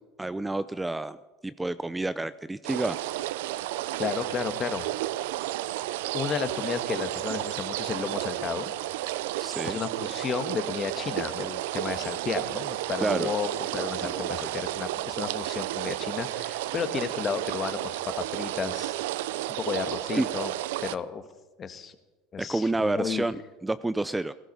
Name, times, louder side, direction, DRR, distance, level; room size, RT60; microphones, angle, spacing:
voice 1, 0.2-1.2 1.4-3.0 9.4-9.8 13.0-13.3 14.0-14.5 20.2-20.3 22.4-23.4 23.6-24.3, right 2 dB, 10° right, 14 dB, 0.5 m, -29 dB
sound 1, 2.6-21.0, right 15 dB, 80° right, 0.5 m, -32 dB
voice 2, 4.0-4.9 6.1-8.7 9.6-19.0 19.5-20.5 20.8-21.2 21.6-21.9 22.3-23.3, left 6 dB, 35° left, 10 dB, 1.5 m, -33 dB
18.0 x 13.0 x 5.5 m, 1.1 s
supercardioid pair, 100°, 0 cm